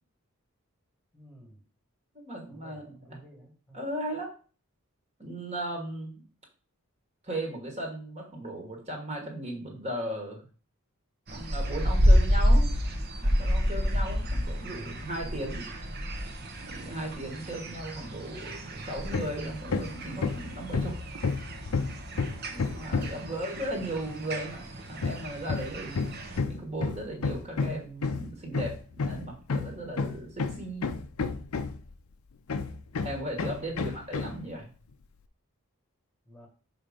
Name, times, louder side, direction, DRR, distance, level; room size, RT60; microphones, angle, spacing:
voice 1, 1.1-1.6 2.5-3.8 23.1-23.4 36.2-36.5, equal, 5° left, 1.4 m, -52 dB
voice 2, 2.1-3.2 3.7-4.3 5.2-6.2 7.2-10.4 11.3-12.7 13.2-15.7 16.6-21.0 22.5-24.6 24.9-26.0 26.5-31.0 33.0-34.7, right 1 dB, 30° right, 1.5 m, -36 dB
sound 1, 11.3-26.4, equal, 45° right, 0.9 m, -29 dB
Hammer, 19.1-19.4 19.7-23.3 25.0-31.9 32.5-34.4, left 4 dB, 75° left, 0.5 m, -31 dB
6.0 x 4.0 x 5.0 m
head